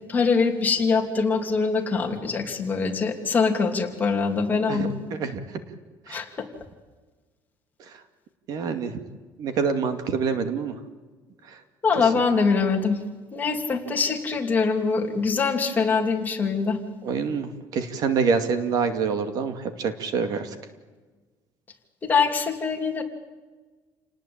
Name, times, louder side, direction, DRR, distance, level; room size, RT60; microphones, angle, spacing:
voice 1, 0.1-4.9 6.1-6.5 11.8-13.0 13.3-16.8 22.0-23.0, left 4 dB, 20° left, 2 dB, 3.0 m, -23 dB
voice 2, 4.7-5.6 6.1-6.2 8.5-8.9 9.4-10.8 17.0-20.5, right 5 dB, 55° right, 9 dB, 2.3 m, -26 dB
29.0 x 19.5 x 8.8 m, 1.3 s
cardioid pair, 160°, 8 cm